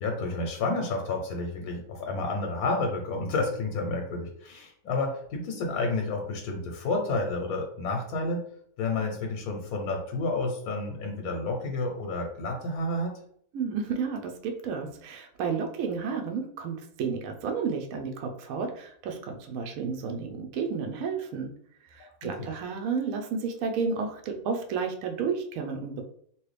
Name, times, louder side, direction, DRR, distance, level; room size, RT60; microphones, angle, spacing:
voice 1, 0.0-8.4 8.8-13.1 22.2-22.5, left 3 dB, 85° left, 2 dB, 1.2 m, -30 dB
voice 2, 13.5-21.5 21.8-26.1, right 5 dB, 75° right, 3 dB, 1.0 m, -32 dB
3.0 x 2.6 x 3.2 m, 0.63 s
omnidirectional pair, 1.5 m